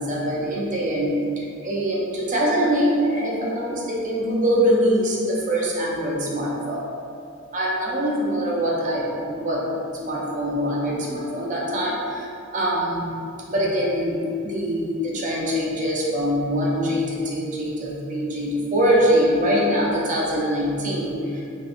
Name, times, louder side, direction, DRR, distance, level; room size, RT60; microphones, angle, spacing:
voice 1, 0.0-6.9 7.5-9.6 10.0-13.1 13.5-21.4, equal, 40° right, -4 dB, 0.6 m, -23 dB
3.4 x 2.9 x 2.5 m, 2.5 s
head